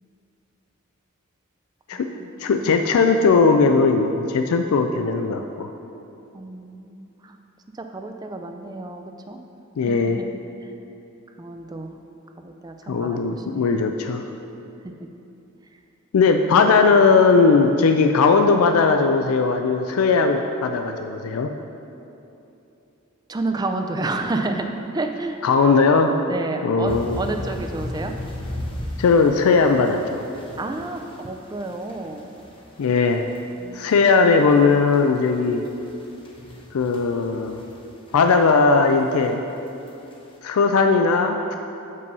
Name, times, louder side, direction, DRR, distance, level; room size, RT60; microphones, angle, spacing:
voice 1, 2.4-5.7 9.8-10.2 12.9-14.2 16.1-21.5 25.4-26.2 26.6-27.2 29.0-30.2 32.8-33.2 33.7-35.6 36.7-37.6 38.1-39.4 40.4-41.6, left 4 dB, 90° left, 6 dB, 0.4 m, -18 dB
voice 2, 6.3-7.3 7.8-9.4 9.9-10.3 10.6-10.7 11.4-12.0 12.4-13.7 23.3-24.7 24.9-25.4 26.3-28.1 30.6-32.2 33.6-33.8, right 2 dB, 20° right, 5 dB, 0.4 m, -30 dB
sound 1, 26.8-38.4 38.8-39.1 39.7-40.1, left 1 dB, 25° left, 0.8 m, -36 dB
5.4 x 5.4 x 6.6 m, 2.8 s
head